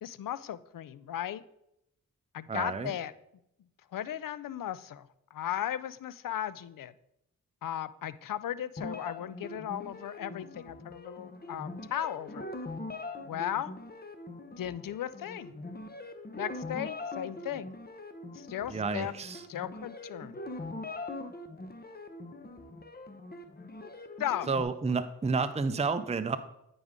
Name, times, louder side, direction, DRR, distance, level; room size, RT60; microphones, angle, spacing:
voice 1, 0.0-1.4 2.3-3.1 3.9-6.9 7.6-12.5 13.3-13.7 14.6-15.5 16.3-17.7 18.3-19.1 19.5-20.4 24.2-24.5, left 11 dB, 60° left, 17 dB, 0.5 m, -36 dB
voice 2, 2.5-2.9 18.7-19.4 24.5-26.4, right 4 dB, 20° right, 9 dB, 0.5 m, -30 dB
sound 1, 8.8-24.6, left 2 dB, 25° left, 0.9 m, -42 dB
9.3 x 5.2 x 3.6 m, 0.80 s
cardioid pair, 45°, 37 cm